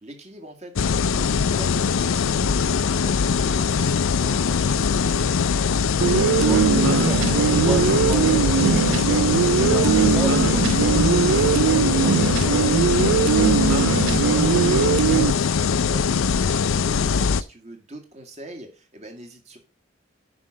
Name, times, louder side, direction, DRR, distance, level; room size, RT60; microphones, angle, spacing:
voice 1, 0.0-5.8 14.3-19.6, right 1 dB, 30° right, 1.9 m, -43 dB
sound 1, 0.8-17.4, left 6 dB, 80° left, 0.5 m, -22 dB
voice 2, 1.5-1.8 6.4-9.1 9.6-13.0, right 1 dB, 5° right, 0.5 m, -33 dB
sound 2, 6.0-15.3, right 7 dB, 75° right, 0.4 m, -20 dB
9.8 x 5.5 x 5.0 m
head